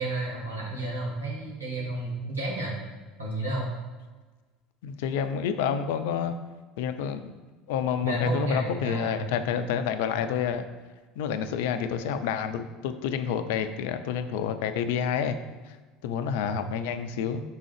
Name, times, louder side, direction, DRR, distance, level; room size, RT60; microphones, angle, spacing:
voice 1, 0.0-2.8 3.2-3.7 8.0-9.2 16.4-16.7, right 2 dB, 85° right, -4 dB, 1.6 m, -31 dB
voice 2, 4.8-6.4 6.8-7.3 7.7-10.7 11.2-15.4 15.7-15.8 16.0-17.4, left 7 dB, 60° left, 9 dB, 0.4 m, -29 dB
5.5 x 3.8 x 4.8 m, 1.3 s
figure-of-eight pair, 70°, 0 cm